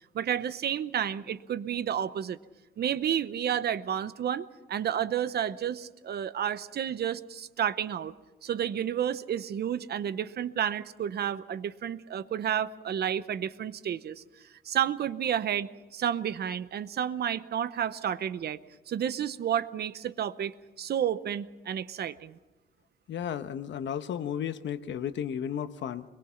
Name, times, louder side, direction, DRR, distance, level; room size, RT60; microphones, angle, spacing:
voice 1, 0.1-2.4 2.8-8.1 8.4-14.2 14.6-18.6 18.9-22.4, right 9 dB, 55° right, 14 dB, 0.8 m, -31 dB
voice 2, 23.1-26.0, left 9 dB, 70° left, 10 dB, 1.1 m, -33 dB
25.0 x 22.0 x 5.8 m, 1.1 s
wide cardioid pair, 175°, 20 cm